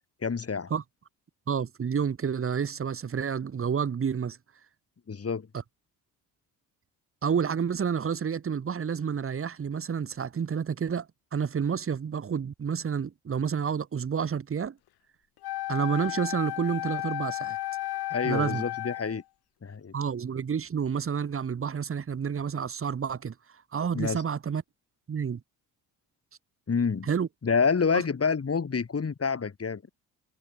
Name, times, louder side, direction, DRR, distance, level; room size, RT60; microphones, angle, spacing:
voice 1, 0.2-0.7 5.1-5.5 18.1-19.2 19.6-19.9 23.9-24.2 26.7-27.1 27.4-29.8, left 5 dB, 30° left, 5.3 m, -28 dB
voice 2, 1.5-4.4 7.2-11.1 11.3-14.8 15.7-17.6 18.2-18.6 19.9-23.3 23.7-24.6 25.1-25.4 27.1-27.3 27.9-28.0, right 7 dB, 30° right, 1.6 m, -29 dB
Wind instrument woodwind instrument, 15.4-19.2, left 16 dB, 55° left, 1.8 m, -33 dB
figure-of-eight pair, 50°, 47 cm